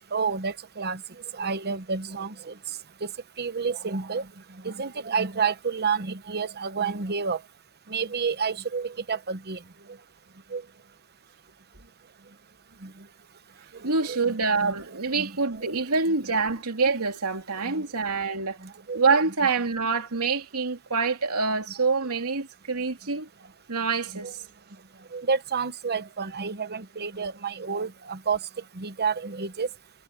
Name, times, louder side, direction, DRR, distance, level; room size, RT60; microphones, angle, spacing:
voice 1, 0.1-1.0 1.3-2.5 3.0-3.1 3.4-4.2 4.6-7.4 7.9-9.6 10.5-10.6 12.8-12.9 14.1-14.8 15.1-15.8 17.6-17.8 18.9-19.0 24.2-24.3 25.1-28.4 28.8-29.7, right 5 dB, 45° right, 1.1 m, -29 dB
voice 2, 13.8-18.6 18.9-23.3 23.7-24.4, right 4 dB, 85° right, 2.8 m, -26 dB
head